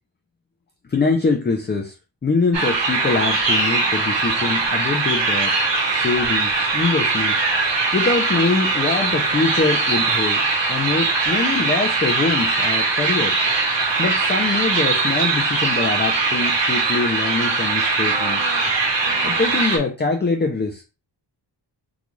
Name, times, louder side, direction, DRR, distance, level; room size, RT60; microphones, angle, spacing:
voice 1, 0.9-1.9 2.2-5.5 5.9-7.4 7.9-10.4 10.7-13.3 14.0-18.4 19.2-20.8, left 4 dB, 25° left, 3 dB, 0.4 m, -23 dB
sound 1, 2.5-19.8, right 3 dB, 75° right, 1.0 m, -21 dB
3.8 x 2.2 x 3.0 m, 0.30 s
wide cardioid pair, 170°, 43 cm